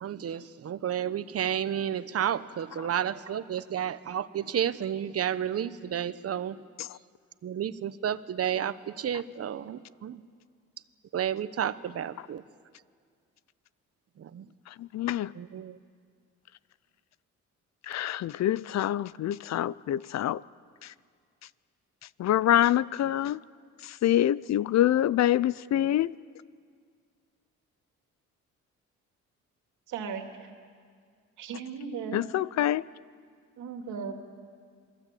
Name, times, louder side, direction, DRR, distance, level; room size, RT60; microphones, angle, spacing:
voice 1, 0.0-6.5 7.4-10.2 11.1-12.4 14.3-14.4 15.4-15.7, right 9 dB, 50° right, 1.0 m, -31 dB
voice 2, 14.8-15.3 17.8-20.4 20.8-20.9 22.2-23.4 23.8-26.2 32.1-32.8, left 12 dB, 60° left, 0.6 m, -26 dB
voice 3, 29.9-30.2 31.4-32.2 33.6-34.2, right 6 dB, 80° right, 2.7 m, -36 dB
27.5 x 21.0 x 8.5 m
cardioid pair, 90°, 30 cm